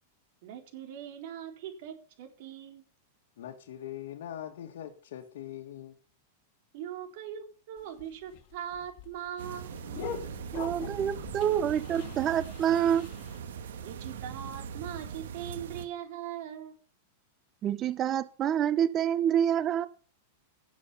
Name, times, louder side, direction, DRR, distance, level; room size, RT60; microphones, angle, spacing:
voice 1, 0.4-2.8 6.7-9.8 13.8-16.8, right 10 dB, 55° right, 3.9 m, -41 dB
voice 2, 3.4-5.9, left 11 dB, 75° left, 1.8 m, -42 dB
sound 1, 7.8-13.4, left 8 dB, 45° left, 2.3 m, -44 dB
sound 2, 9.4-15.9, right 7 dB, 85° right, 2.0 m, -41 dB
voice 3, 10.5-13.1 17.6-19.9, right 9 dB, 25° right, 0.6 m, -27 dB
17.5 x 7.6 x 5.6 m
supercardioid pair, 155°, 0 cm